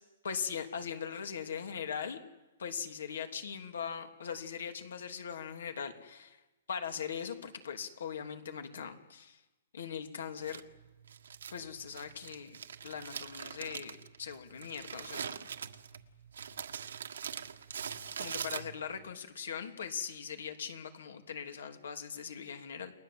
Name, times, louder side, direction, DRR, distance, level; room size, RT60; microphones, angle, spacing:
voice 1, 0.2-2.2 2.6-6.4 6.7-9.4 9.7-10.6 11.5-15.5 18.2-22.9, left 7 dB, 75° left, 6 dB, 3.1 m, -40 dB
Crumpling crinkling, 10.4-19.1, right 7 dB, 80° right, 1.6 m, -43 dB
30.0 x 21.0 x 7.9 m, 1.1 s
hypercardioid pair, 175°, 0 cm